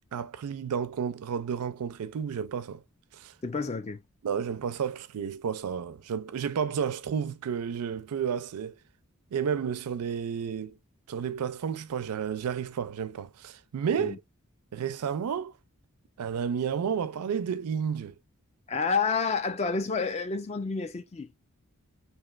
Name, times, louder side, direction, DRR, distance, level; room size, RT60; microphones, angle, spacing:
voice 1, 0.1-2.8 3.2-3.3 4.2-8.8 9.3-10.8 11.1-14.2 14.7-15.5 16.2-18.1, right 7 dB, 85° right, 0.4 m, -31 dB
voice 2, 3.4-4.0 14.0-14.2 18.7-21.3, left 4 dB, 30° left, 0.3 m, -29 dB
3.1 x 2.8 x 2.3 m
head